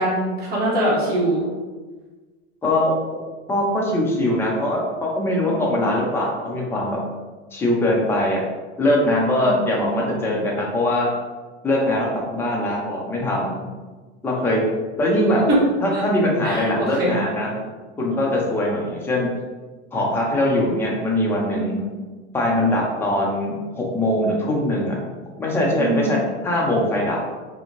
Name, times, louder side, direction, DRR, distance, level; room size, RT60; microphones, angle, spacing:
voice 1, 0.0-1.4 5.4-5.8 9.4-10.4 15.5-15.6 15.9-16.0 16.4-17.1 21.5-21.9 25.7-26.2, right 1 dB, 30° right, -7 dB, 1.4 m, -24 dB
voice 2, 2.6-2.9 3.5-7.0 7.5-8.4 8.8-11.1 11.6-13.7 14.2-14.6 15.0-15.4 15.8-17.6 18.0-19.3 19.9-21.7 22.3-25.0 25.4-27.2, left 1 dB, 5° left, -3 dB, 0.3 m, -22 dB
3.7 x 2.6 x 2.9 m, 1.3 s
supercardioid pair, 145°, 34 cm